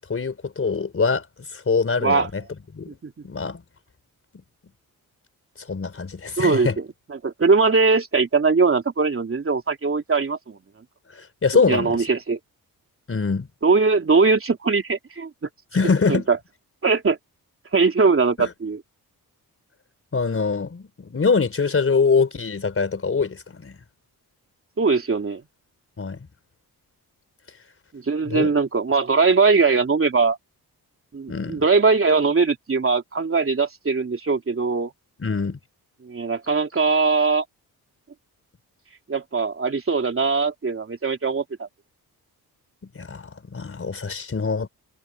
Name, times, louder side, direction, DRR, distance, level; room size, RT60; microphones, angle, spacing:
voice 1, 0.1-1.3 1.5-2.4 2.7-3.0 3.2-3.6 5.7-6.8 11.1-12.0 13.1-13.5 15.7-16.3 18.4-18.5 20.1-23.8 26.0-26.2 28.3-28.5 31.3-31.6 35.2-35.6 43.0-44.7, left 4 dB, 35° left, 4.2 m, -23 dB
voice 2, 6.4-10.6 11.7-12.4 13.6-15.3 16.1-16.4 16.8-17.2 17.7-18.8 24.8-25.4 27.9-30.4 31.1-34.9 36.0-37.4 39.1-41.7, right 4 dB, 35° right, 3.4 m, -21 dB
wide cardioid pair, 120°, 38 cm